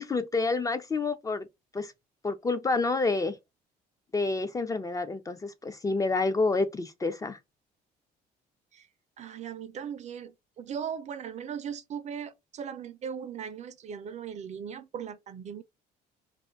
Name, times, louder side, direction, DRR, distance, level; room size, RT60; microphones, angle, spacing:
voice 1, 0.0-1.5 1.7-1.9 2.2-3.4 4.1-7.4, left 3 dB, 20° left, 0.3 m, -28 dB
voice 2, 9.2-15.6, right 7 dB, 45° right, 0.4 m, -38 dB
2.5 x 2.4 x 3.6 m
cardioid pair, 110°, 17 cm